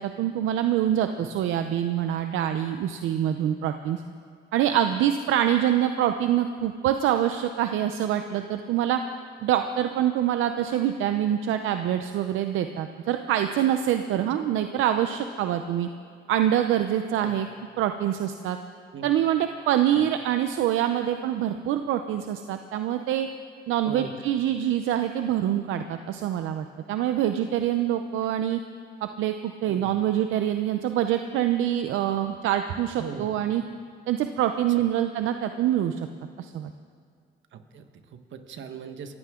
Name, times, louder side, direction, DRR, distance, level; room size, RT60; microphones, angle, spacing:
voice 1, 0.0-4.0 4.5-9.0 9.4-15.9 16.3-17.5 17.8-18.6 19.0-23.3 23.7-28.6 29.0-33.6 34.1-36.0 36.4-36.7, right 11 dB, 90° right, 8 dB, 0.6 m, -25 dB
voice 2, 29.6-30.0 33.0-33.3 34.7-34.8 37.5-39.1, right 6 dB, 70° right, 7 dB, 1.3 m, -40 dB
23.0 x 15.0 x 3.7 m, 2.1 s
cardioid pair, 90°, 20 cm